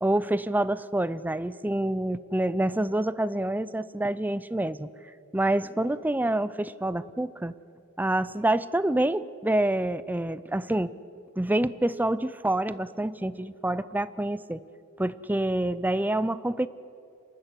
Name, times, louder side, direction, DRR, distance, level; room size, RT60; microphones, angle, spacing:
voice 1, 0.0-4.9 5.3-7.5 8.0-10.9 11.4-14.6 15.0-16.7, right 1 dB, 10° right, 17 dB, 0.5 m, -27 dB
27.5 x 12.5 x 9.7 m, 2.6 s
head